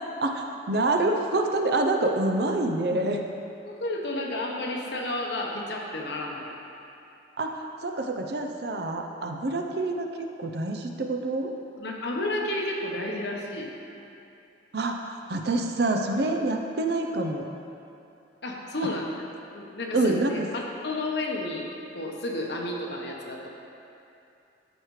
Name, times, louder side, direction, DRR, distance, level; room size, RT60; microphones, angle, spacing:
voice 1, 0.2-3.2 7.4-11.5 14.7-15.0 15.3-17.4 19.9-20.3, right 2 dB, 55° right, 3 dB, 0.6 m, -27 dB
voice 2, 3.6-6.5 11.8-13.7 18.4-19.2 19.5-21.7 21.9-23.5, left 1 dB, 60° left, -1 dB, 1.0 m, -31 dB
13.5 x 5.0 x 3.2 m, 2.7 s
head